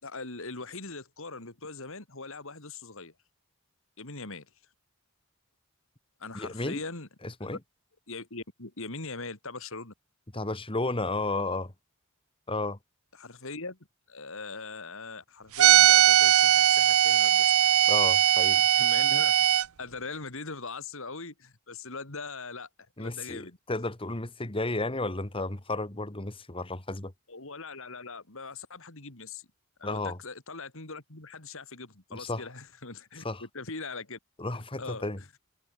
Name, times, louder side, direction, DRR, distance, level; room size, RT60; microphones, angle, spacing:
voice 1, 0.0-3.1 4.0-4.5 6.2-7.1 7.4-7.5 8.1-9.9 13.1-13.8 14.1-17.5 18.7-19.4 19.8-22.7 23.0-23.6 27.3-29.5 29.8-34.2 34.8-35.3, left 3 dB, 65° left, 3.3 m, -41 dB
voice 2, 6.3-6.8 7.2-7.6 10.3-11.7 12.5-12.8 17.9-18.6 23.0-27.1 29.8-30.2 32.1-32.5 33.2-33.4 34.4-35.2, left 2 dB, 25° left, 1.9 m, -32 dB
sound 1, 15.6-19.6, right 11 dB, 70° right, 0.6 m, -20 dB
head